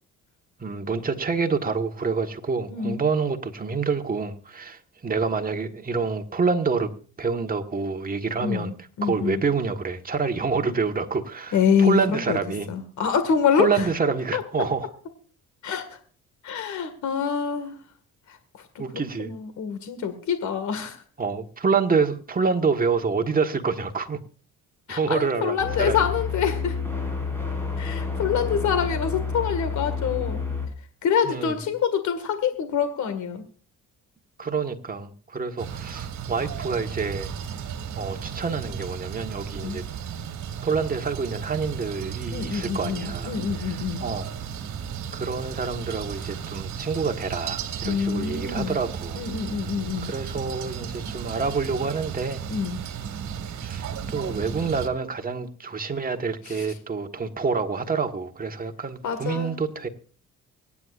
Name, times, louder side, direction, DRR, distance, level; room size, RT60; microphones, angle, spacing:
voice 1, 0.6-6.9 7.2-8.7 9.0-12.7 13.6-14.9 18.8-19.3 21.2-24.2 24.9-26.0 31.3-31.6 34.4-37.3 37.9-39.8 40.6-43.4 43.7-44.2 45.1-49.2 50.0-52.4 53.6-59.9, right 4 dB, 30° right, 1.6 m, -27 dB
voice 2, 2.7-3.0 8.4-9.4 11.5-12.4 12.7-13.9 14.3-14.4 15.6-16.0 16.4-17.8 18.3-21.0 24.9-26.8 27.8-30.4 30.8-33.5 39.5-39.8 42.3-44.0 47.8-48.8 49.1-50.1 52.5-52.8 56.4-56.8 59.0-59.6, left 7 dB, 70° left, 2.0 m, -26 dB
sound 1, 25.6-30.7, left 5 dB, 5° left, 5.4 m, -29 dB
sound 2, 35.6-54.9, right 8 dB, 70° right, 1.7 m, -34 dB
24.5 x 9.8 x 2.5 m
cardioid pair, 90°, 30 cm